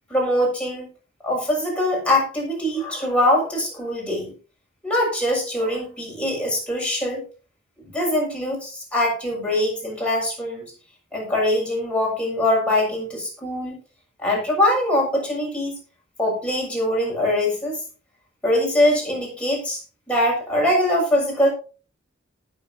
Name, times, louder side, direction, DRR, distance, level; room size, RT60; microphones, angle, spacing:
voice 1, 0.1-0.9 1.2-4.3 4.8-7.2 7.8-10.7 11.1-13.7 14.2-15.7 16.2-17.8 18.4-19.8 20.1-21.5, left 1 dB, 5° left, -2 dB, 6.7 m, -22 dB
19.0 x 7.5 x 2.9 m, 0.36 s
head